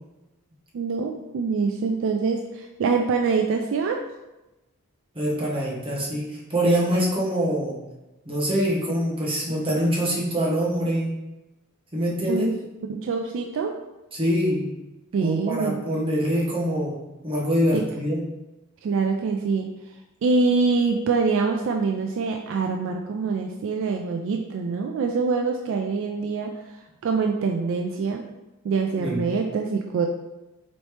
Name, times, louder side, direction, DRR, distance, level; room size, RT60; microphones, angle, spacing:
voice 1, 0.7-4.0 12.3-12.5 12.9-13.7 15.1-15.7 17.7-17.8 18.8-19.7 20.2-26.5 27.0-28.2 28.6-30.1, right 4 dB, 60° right, 3 dB, 0.3 m, -24 dB
voice 2, 5.1-7.8 8.2-11.1 11.9-12.5 14.1-14.7 15.2-18.2 29.0-29.2, equal, 25° right, -4 dB, 1.0 m, -24 dB
4.0 x 3.1 x 3.2 m, 1.0 s
head